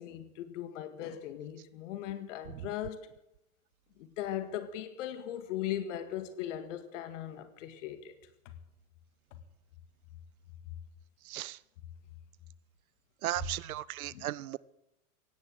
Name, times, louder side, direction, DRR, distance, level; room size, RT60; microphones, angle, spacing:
voice 1, 0.0-3.0 4.0-8.1 8.5-8.6 14.1-14.3, left 11 dB, 55° left, 2.0 m, -38 dB
voice 2, 11.2-11.6 13.2-14.6, right 14 dB, 75° right, 0.8 m, -36 dB
17.0 x 10.5 x 7.7 m
hypercardioid pair, 110°, 44 cm